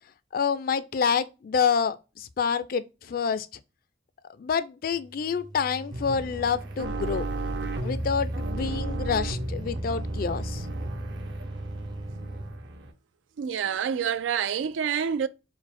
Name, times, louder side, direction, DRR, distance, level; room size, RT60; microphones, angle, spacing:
voice 1, 0.3-3.5 4.4-7.3 7.8-10.7, left 6 dB, 50° left, 0.4 m, -27 dB
sound 1, 4.9-12.6, right 2 dB, 25° right, 0.5 m, -40 dB
sound 2, 5.9-12.9, right 1 dB, 65° right, 0.7 m, -33 dB
voice 2, 13.4-15.3, right 8 dB, 90° right, 0.3 m, -27 dB
4.5 x 2.1 x 4.1 m
head